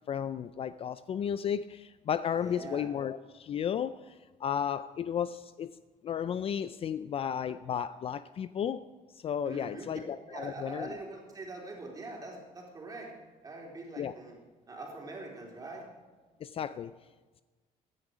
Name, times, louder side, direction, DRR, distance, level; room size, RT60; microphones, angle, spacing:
voice 1, 0.1-4.1 4.4-5.7 6.0-8.8 9.2-10.9 14.0-14.1 16.4-16.9, left 8 dB, 40° left, 14 dB, 0.4 m, -33 dB
voice 2, 2.4-2.9 9.4-10.0 10.3-13.1 13.4-14.4 14.7-15.9, right 2 dB, 25° right, -1 dB, 3.5 m, -43 dB
17.0 x 10.5 x 5.0 m, 1.3 s
cardioid pair, 130°, 15 cm